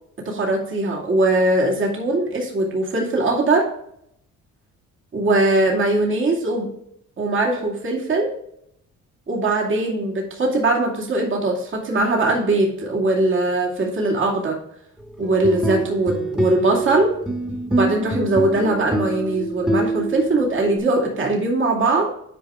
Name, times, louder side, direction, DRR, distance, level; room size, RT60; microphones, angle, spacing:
voice 1, 0.2-3.7 5.1-6.7 7.2-8.3 9.3-14.6 15.2-17.1 17.7-22.1, right 2 dB, 40° right, -1 dB, 2.3 m, -21 dB
sound 1, 15.2-20.8, right 2 dB, 5° right, 1.6 m, -25 dB
9.8 x 5.0 x 3.6 m, 0.73 s
cardioid pair, 90°, 30 cm